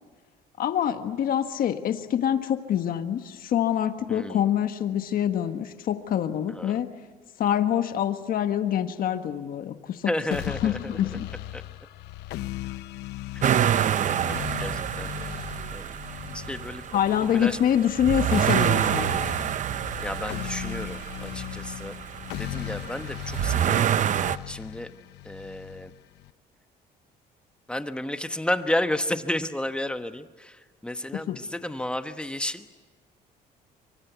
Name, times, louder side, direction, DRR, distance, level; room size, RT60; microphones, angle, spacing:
voice 1, 0.6-6.9 7.4-10.1 10.6-11.3 16.9-19.1 31.1-31.4, left 10 dB, 60° left, 8 dB, 1.5 m, -25 dB
voice 2, 4.1-4.5 6.5-6.8 10.1-11.2 11.5-11.6 13.3-15.1 15.7-17.0 17.3-17.6 20.0-21.9 22.4-23.9 24.4-24.9 25.2-25.9 27.7-32.7, left 1 dB, 5° left, 9 dB, 1.2 m, -32 dB
sound 1, 10.3-26.3, left 14 dB, 85° left, 0.9 m, -38 dB
sound 2, 13.4-24.4, right 10 dB, 45° right, 0.7 m, -27 dB
24.5 x 24.0 x 8.2 m, 1.4 s
cardioid pair, 110°, 17 cm